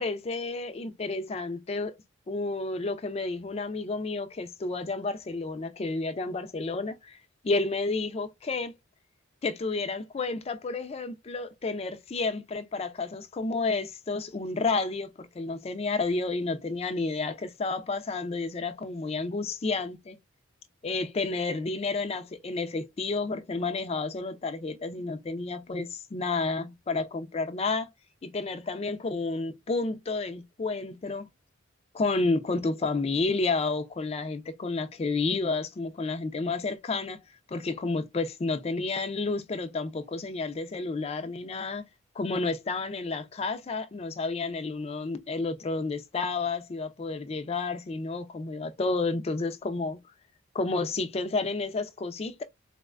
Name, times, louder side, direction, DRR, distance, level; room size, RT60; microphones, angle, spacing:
voice 1, 0.0-2.0 2.3-7.2 7.4-8.7 9.4-20.2 20.8-27.9 28.2-31.3 31.9-37.2 37.5-41.9 42.2-50.0 50.5-52.4, left 3 dB, 30° left, 0.4 m, -31 dB
4.0 x 2.2 x 2.3 m
head